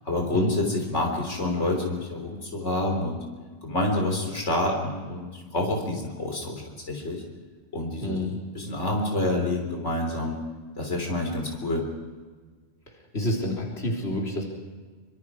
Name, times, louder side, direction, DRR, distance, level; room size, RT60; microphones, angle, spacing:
voice 1, 0.0-3.2 3.6-7.2 7.7-8.2 8.5-10.3 10.8-11.9, left 2 dB, 90° left, 1 dB, 3.9 m, -27 dB
voice 2, 8.0-8.4 13.1-14.4, left 1 dB, 65° left, -2 dB, 4.0 m, -28 dB
25.5 x 25.5 x 4.9 m, 1.4 s
omnidirectional pair, 1.2 m